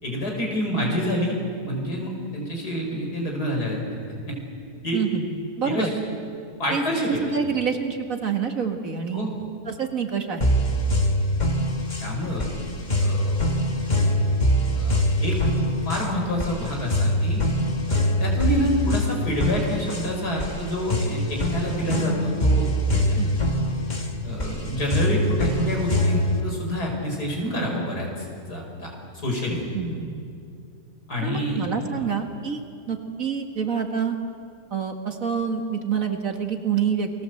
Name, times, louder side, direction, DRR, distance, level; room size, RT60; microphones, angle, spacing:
voice 1, 0.0-3.8 4.3-4.4 4.8-5.0 5.6-5.9 6.6-7.2 9.1-9.3 12.0-12.5 13.0-13.4 14.8-15.4 15.9-17.4 17.9-23.1 24.2-28.9 29.2-29.6 31.1-31.6, equal, 70° left, 0 dB, 5.5 m, -27 dB
voice 2, 4.9-5.3 5.6-5.9 6.7-6.8 7.2-9.3 9.7-10.5 23.2-23.3 29.7-30.1 31.2-32.6 32.9-34.2 34.7-37.2, right 6 dB, 55° right, 4 dB, 2.1 m, -27 dB
sound 1, 10.4-26.4, equal, 25° left, 1.9 m, -24 dB
29.0 x 20.5 x 7.8 m, 2.4 s
omnidirectional pair, 1.8 m